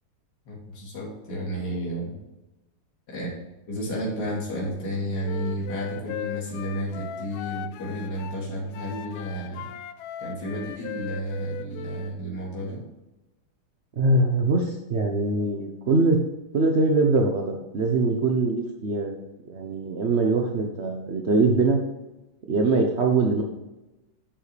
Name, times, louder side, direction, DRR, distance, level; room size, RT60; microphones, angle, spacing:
voice 1, 0.4-2.2 3.1-3.3 3.7-9.6 10.2-12.8, equal, 50° left, -5 dB, 3.1 m, -32 dB
Wind instrument woodwind instrument, 5.2-8.4 8.7-12.1, left 9 dB, 80° left, 1.4 m, -38 dB
voice 2, 14.0-16.2 16.5-19.1 19.5-21.8 22.5-23.4, right 3 dB, 70° right, 2 dB, 0.6 m, -22 dB
8.8 x 7.3 x 3.3 m, 1.0 s
omnidirectional pair, 2.4 m